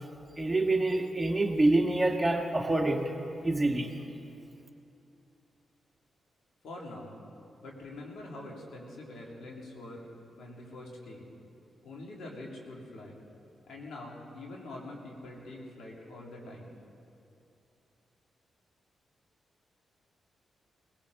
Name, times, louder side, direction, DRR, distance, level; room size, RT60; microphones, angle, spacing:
voice 1, 0.4-3.1 3.4-4.0, right 2 dB, 15° right, 2 dB, 1.7 m, -26 dB
voice 2, 6.6-7.2 7.6-10.1 10.4-11.3 11.8-13.2 13.6-16.7, left 2 dB, 75° left, -2 dB, 2.9 m, -44 dB
20.0 x 17.0 x 4.1 m, 2.7 s
supercardioid pair, 55°, 0 cm